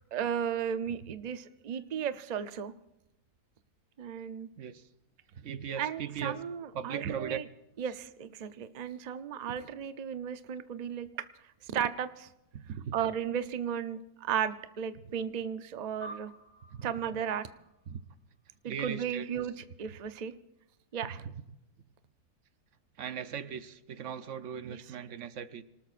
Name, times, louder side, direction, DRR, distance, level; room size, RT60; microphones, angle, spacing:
voice 1, 0.1-2.7 4.0-4.5 5.8-7.4 7.8-11.3 11.6-12.3 12.9-16.3 16.8-17.5 18.6-20.3 20.9-21.2 24.7-24.8, right 8 dB, 80° right, 0.3 m, -35 dB
voice 2, 5.3-6.4 6.7-7.4 12.5-13.0 16.7-16.9 17.9-18.0 18.7-19.3 21.1-21.3 23.0-25.6, right 7 dB, 60° right, 1.0 m, -38 dB
sound 1, 16.0-18.7, right 1 dB, 40° left, 1.1 m, -50 dB
26.5 x 19.0 x 2.5 m
omnidirectional pair, 1.7 m